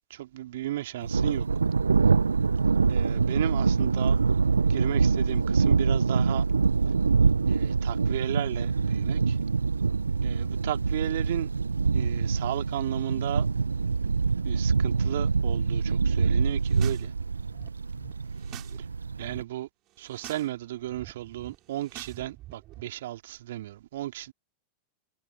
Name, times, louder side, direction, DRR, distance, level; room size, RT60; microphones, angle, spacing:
voice 1, 0.1-1.5 2.9-4.2 4.7-6.4 7.5-9.4 10.2-11.5 11.9-13.5 14.4-17.1 18.8-18.9 19.2-19.7 20.0-24.3, right 14 dB, 55° right, 2.8 m, -34 dB
Thunder, 1.0-19.4, right 4 dB, 75° right, 0.7 m, -25 dB
sound 1, 16.5-17.1 17.3-18.8 19.0-19.4 19.9-20.5 20.7-22.8, right 17 dB, 35° right, 6.5 m, -47 dB
figure-of-eight pair, 90°, 0 cm